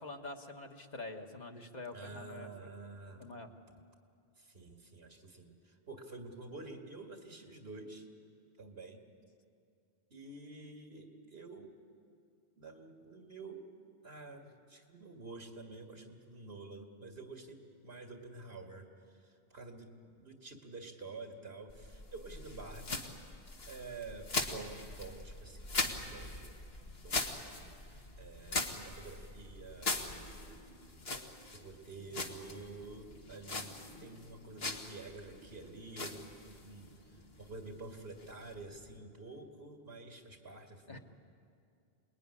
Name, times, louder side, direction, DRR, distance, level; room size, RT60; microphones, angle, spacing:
voice 1, 0.0-2.7 3.2-3.5 40.9-41.0, left 2 dB, 45° left, 3 dB, 1.7 m, -46 dB
voice 2, 1.9-3.3 4.4-8.1 8.6-9.0 10.1-11.7 12.6-13.7 14.0-23.1 23.7-31.0 31.5-36.9 37.4-41.0, right 3 dB, 75° right, 2 dB, 2.4 m, -49 dB
sound 1, 21.7-39.0, left 3 dB, 75° left, 2.0 m, -42 dB
28.0 x 20.5 x 9.9 m, 2.4 s
omnidirectional pair, 1.0 m